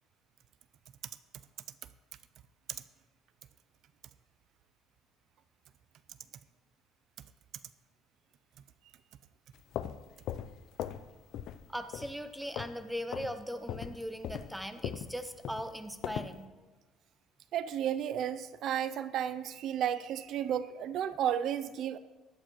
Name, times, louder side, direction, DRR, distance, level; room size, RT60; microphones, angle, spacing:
sound 1, 9.5-11.1 11.3-11.6 11.9-12.8 13.1-13.3 13.7-16.4, left 10 dB, 60° left, 0.5 m, -39 dB
voice 1, 11.7-16.5, equal, ahead, 9 dB, 0.7 m, -39 dB
voice 2, 17.5-22.0, right 9 dB, 55° right, 14 dB, 0.4 m, -33 dB
16.0 x 11.5 x 3.0 m, 1.2 s
cardioid pair, 140°, 0 cm